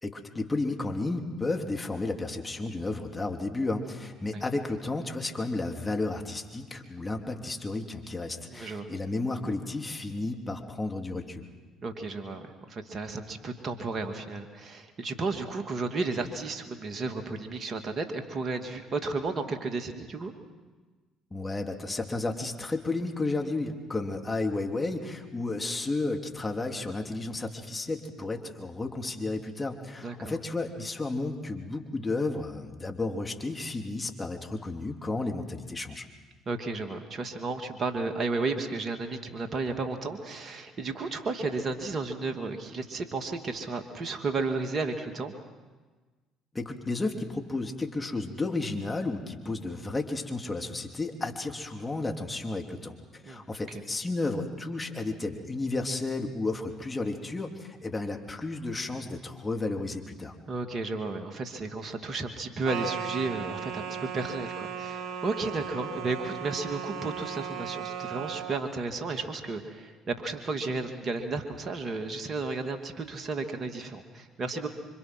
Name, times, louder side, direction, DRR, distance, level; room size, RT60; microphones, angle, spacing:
voice 1, 0.0-11.4 21.3-36.1 46.5-60.3, left 2 dB, 20° left, 3 dB, 3.3 m, -32 dB
voice 2, 8.5-8.9 11.8-20.3 30.0-30.3 36.5-45.3 53.2-53.4 60.5-74.7, right 3 dB, 45° right, 6 dB, 2.4 m, -33 dB
sound 1, 62.6-68.6, right 7 dB, 60° right, 2.0 m, -36 dB
27.5 x 25.0 x 6.2 m, 1.3 s
hypercardioid pair, 60°, 0 cm